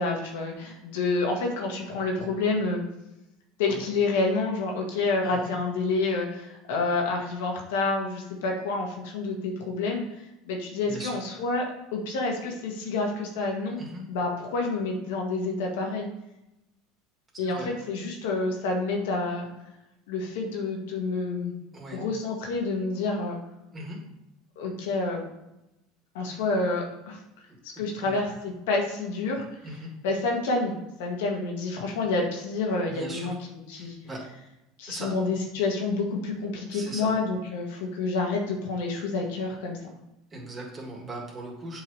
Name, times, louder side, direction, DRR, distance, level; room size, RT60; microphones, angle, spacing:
voice 1, 0.0-2.8 3.6-10.0 10.5-13.8 14.1-16.1 17.4-19.5 20.1-21.5 21.9-23.4 24.6-25.2 26.1-27.2 27.8-29.4 30.0-33.3 33.7-34.0 34.8-39.8, left 3 dB, 80° left, 0 dB, 1.8 m, -28 dB
voice 2, 10.8-11.2 13.8-14.0 17.4-17.7 21.7-22.0 23.7-24.0 27.7-28.2 29.6-29.9 32.9-33.3 33.7-34.2 34.9-35.1 36.7-37.1 40.3-41.8, right 1 dB, 25° right, -1 dB, 2.4 m, -39 dB
7.7 x 4.6 x 3.4 m, 0.89 s
supercardioid pair, 100°, 0 cm